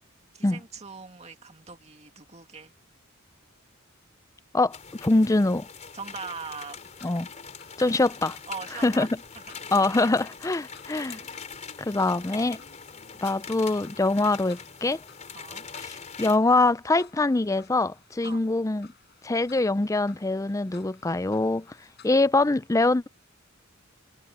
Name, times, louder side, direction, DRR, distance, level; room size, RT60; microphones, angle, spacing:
voice 1, 0.3-2.7 5.9-7.1 8.5-9.1 9.4-9.7 10.9-11.1 11.9-12.2 15.3-15.7 18.2-18.4, right 5 dB, 30° right, 2.3 m, -41 dB
voice 2, 4.5-5.7 7.0-7.3 7.8-8.4 8.8-9.1 9.7-11.2 11.8-12.6 13.2-15.0 15.8-18.9 19.2-21.7 22.0-23.1, left 2 dB, 15° left, 0.5 m, -24 dB
sound 1, 4.7-16.4, left 6 dB, 35° left, 4.4 m, -42 dB
sound 2, 6.3-22.3, left 6 dB, 50° left, 6.9 m, -57 dB
head